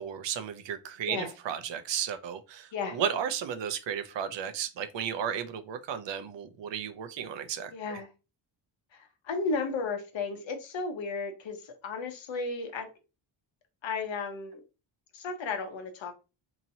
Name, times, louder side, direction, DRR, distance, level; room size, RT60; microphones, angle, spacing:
voice 1, 0.0-8.0, right 8 dB, 65° right, 0.6 m, -34 dB
voice 2, 7.7-8.1 8.9-12.9 13.8-14.6 15.1-16.2, left 4 dB, 70° left, 0.9 m, -34 dB
2.9 x 2.8 x 2.6 m
wide cardioid pair, 155°, 47 cm